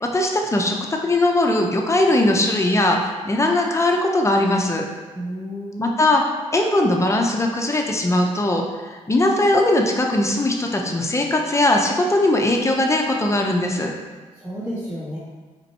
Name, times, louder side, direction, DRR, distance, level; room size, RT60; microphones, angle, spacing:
voice 1, 0.0-4.9 5.8-6.2 6.5-13.9, left 1 dB, 20° left, 1 dB, 0.6 m, -20 dB
voice 2, 5.1-6.0 14.4-15.2, equal, 20° right, -10 dB, 1.3 m, -31 dB
4.4 x 2.7 x 4.1 m, 1.3 s
cardioid pair, 75°, 13 cm